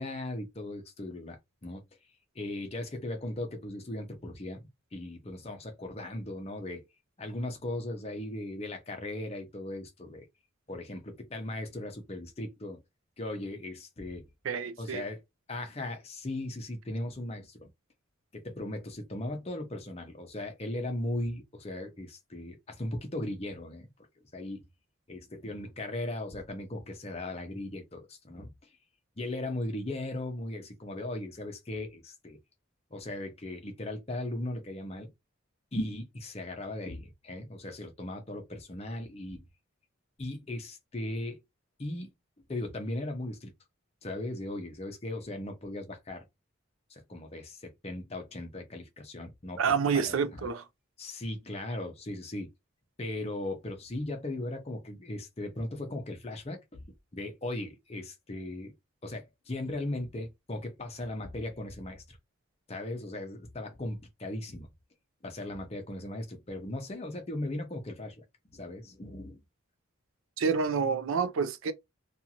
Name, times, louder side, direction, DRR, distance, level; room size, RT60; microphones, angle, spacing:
voice 1, 0.0-1.8 2.3-6.9 7.2-10.3 10.7-12.8 13.2-14.3 14.8-15.2 15.5-17.7 18.3-23.9 24.3-24.6 25.1-28.7 29.2-32.4 32.9-35.1 35.7-39.4 40.2-41.4 41.8-43.5 44.0-46.3 46.9-49.6 49.9-50.4 51.0-52.5 53.0-56.8 57.1-58.7 59.0-62.2 62.7-64.7 65.2-68.2 68.5-69.4, left 1 dB, 30° left, 0.6 m, -38 dB
voice 2, 14.5-15.0 49.6-50.6 70.4-71.7, right 6 dB, 75° right, 0.4 m, -28 dB
2.5 x 2.4 x 2.8 m
head